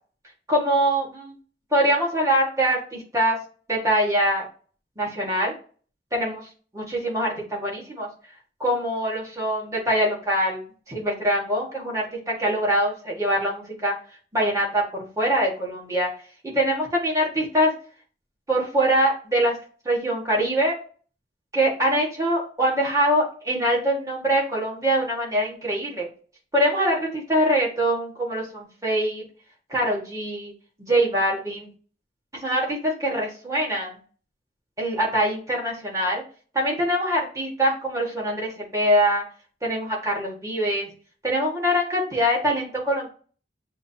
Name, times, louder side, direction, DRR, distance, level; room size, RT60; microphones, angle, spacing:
voice 1, 0.5-1.3 1.7-3.4 3.7-4.4 5.0-5.5 6.1-6.5 6.7-8.1 8.6-10.6 10.9-13.9 14.3-16.1 16.4-17.7 18.5-19.6 19.8-20.7 21.5-26.1 26.5-29.2 29.7-30.5 30.8-31.7 32.4-34.0 34.8-36.2 36.5-39.2 39.6-40.9 41.2-43.1, equal, 20° right, -3 dB, 1.6 m, -23 dB
7.5 x 2.6 x 2.7 m, 0.41 s
head